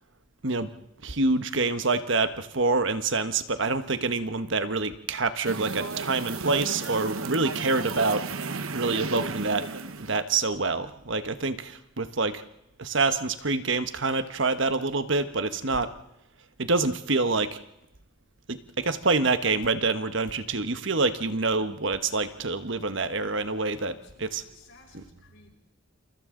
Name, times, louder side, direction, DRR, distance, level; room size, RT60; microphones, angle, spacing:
voice 1, 1.0-8.2 8.7-9.7 10.0-12.4 12.8-15.9 16.6-17.6 18.5-24.4 24.9-25.0, right 3 dB, 60° right, 10 dB, 1.2 m, -26 dB
sound 1, 5.4-10.2, right 4 dB, 75° right, 1.1 m, -34 dB
voice 2, 23.8-25.6, left 3 dB, 60° left, 0 dB, 6.6 m, -56 dB
28.5 x 28.5 x 3.9 m, 0.87 s
head